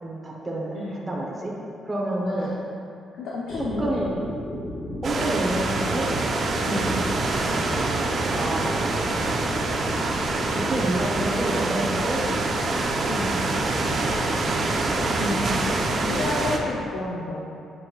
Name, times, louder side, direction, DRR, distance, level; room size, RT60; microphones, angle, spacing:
voice 1, 0.0-1.5 1.8-2.5 3.8-4.1 5.0-6.1 8.3-8.8 10.5-12.2 14.0-14.5, right 1 dB, 20° right, -3 dB, 1.2 m, -29 dB
voice 2, 2.2-2.6 3.2-4.0 6.6-7.0 13.1-13.4 15.2-15.4 16.0-17.5, left 2 dB, 75° left, -4 dB, 0.8 m, -30 dB
sound 1, 3.5-16.6, left 1 dB, 30° left, 1.0 m, -33 dB
sound 2, 5.0-16.6, right 3 dB, 50° right, 0.7 m, -26 dB
7.4 x 6.3 x 2.5 m, 2.5 s
cardioid pair, 90°, 0 cm